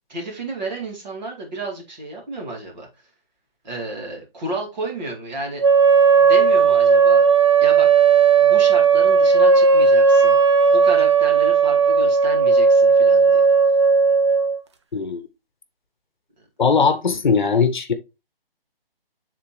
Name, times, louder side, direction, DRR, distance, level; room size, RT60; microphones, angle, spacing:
voice 1, 0.1-2.9 3.6-5.6 6.2-7.2 7.6-7.9 8.4-10.4 10.7-13.4, right 2 dB, 45° right, 2.4 m, -31 dB
sound 1, 5.6-14.6, right 5 dB, 30° right, 0.4 m, -15 dB
voice 2, 16.6-17.9, left 5 dB, 55° left, 0.9 m, -19 dB
8.4 x 3.7 x 3.1 m
figure-of-eight pair, 145°, 30 cm